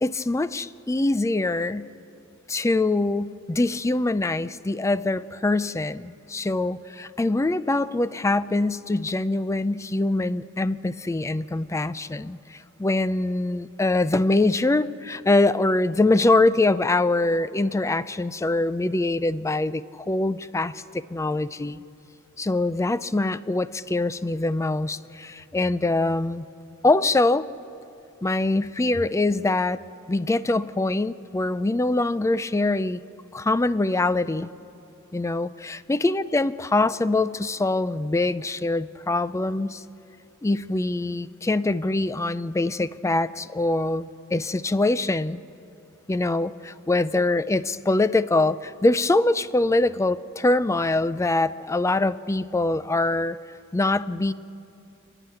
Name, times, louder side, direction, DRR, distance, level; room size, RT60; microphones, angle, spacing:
voice 1, 0.0-1.9 2.5-21.8 22.4-26.5 26.8-27.5 28.2-29.8 30.1-33.0 33.3-34.5 35.1-39.8 40.4-45.4 46.1-53.4 53.7-54.3, left 2 dB, 15° left, 16 dB, 0.4 m, -24 dB
30.0 x 10.0 x 9.0 m, 2.7 s
head